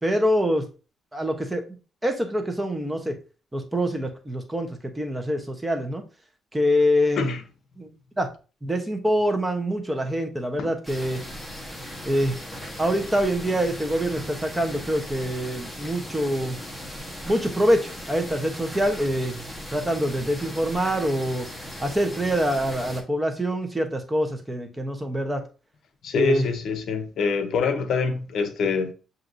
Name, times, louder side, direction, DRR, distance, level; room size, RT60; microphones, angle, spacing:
voice 1, 0.0-0.6 1.1-1.6 2.0-3.1 3.5-6.0 6.5-7.3 7.8-7.9 8.2-8.3 8.6-11.2 12.0-12.3 12.8-16.6 17.3-19.4 19.7-21.5 21.8-25.4 26.1-26.4, equal, 10° right, 0.9 m, -25 dB
sound 1, 10.8-23.0, equal, 5° left, 1.2 m, -38 dB
voice 2, 26.0-28.9, left 5 dB, 65° left, 0.7 m, -25 dB
7.4 x 2.7 x 2.6 m
cardioid pair, 90°, 0 cm